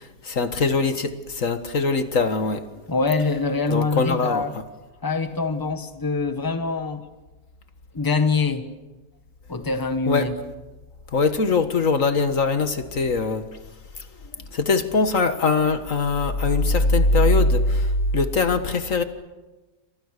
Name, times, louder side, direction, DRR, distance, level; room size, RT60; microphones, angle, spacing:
voice 1, 0.0-2.7 3.7-4.5 10.1-10.3 11.1-13.5 14.5-19.0, left 3 dB, 60° left, 1.9 m, -21 dB
voice 2, 2.9-4.5 5.0-7.0 7.9-8.7 9.5-10.3, left 4 dB, 15° left, 1.6 m, -24 dB
29.0 x 26.5 x 6.7 m
omnidirectional pair, 1.6 m